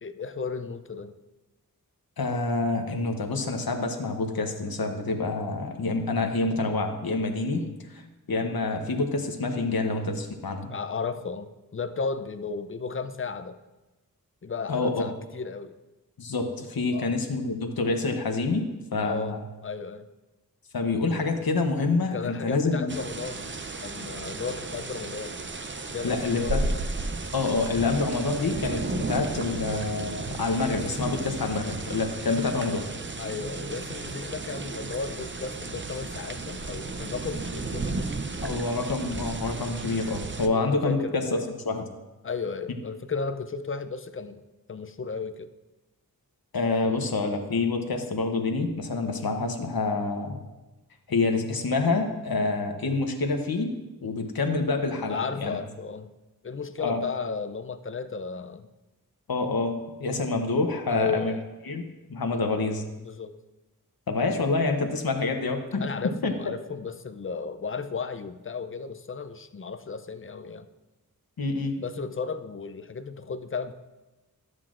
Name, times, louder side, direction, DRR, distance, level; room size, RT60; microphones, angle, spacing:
voice 1, 0.0-1.1 7.5-7.8 10.7-13.6 14.4-15.7 16.9-17.2 19.0-19.4 19.6-20.1 22.1-25.4 25.9-26.7 33.2-38.0 40.5-41.4 42.2-44.4 44.7-45.5 46.8-47.1 55.1-56.1 56.4-58.7 60.9-61.4 62.3-62.5 63.0-63.4 65.8-70.7 71.8-73.7, left 5 dB, 35° left, 10 dB, 0.5 m, -34 dB
voice 2, 2.2-8.0 8.3-10.7 14.7-15.0 16.2-19.4 20.7-23.0 26.0-26.7 27.3-32.9 38.4-41.4 41.7-41.8 46.5-50.4 51.1-55.6 56.8-57.1 59.3-61.4 61.6-61.8 62.1-62.8 64.1-65.9 66.2-66.3 71.4-71.8, left 3 dB, 70° left, 4 dB, 0.9 m, -27 dB
sound 1, 22.9-40.5, right 3 dB, 30° right, 0.5 m, -34 dB
12.5 x 7.5 x 2.5 m, 1.1 s
wide cardioid pair, 70°, 37 cm